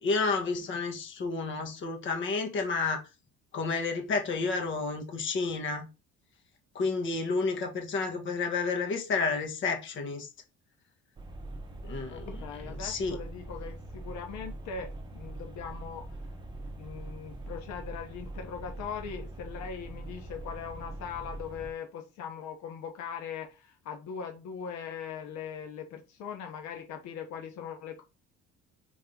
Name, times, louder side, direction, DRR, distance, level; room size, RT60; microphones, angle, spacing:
voice 1, 0.0-3.0 3.5-5.9 6.8-10.3 11.8-13.2, left 4 dB, 40° left, 1.6 m, -31 dB
sound 1, 11.2-21.7, right 2 dB, 15° right, 1.0 m, -42 dB
voice 2, 12.1-16.2 16.8-28.0, left 7 dB, 70° left, 1.2 m, -40 dB
5.3 x 3.6 x 5.4 m
cardioid pair, 160°, 30 cm